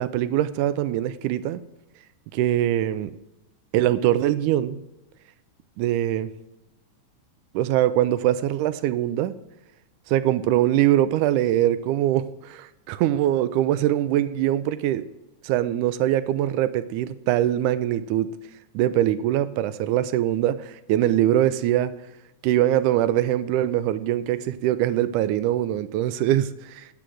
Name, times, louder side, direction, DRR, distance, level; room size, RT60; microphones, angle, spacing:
voice 1, 0.0-1.6 2.3-3.1 3.7-4.8 5.8-6.3 7.5-9.3 10.1-15.1 15.4-18.3 18.7-21.9 22.4-26.9, right 12 dB, 85° right, 14 dB, 2.1 m, -22 dB
9.0 x 8.7 x 7.7 m, 0.97 s
omnidirectional pair, 3.5 m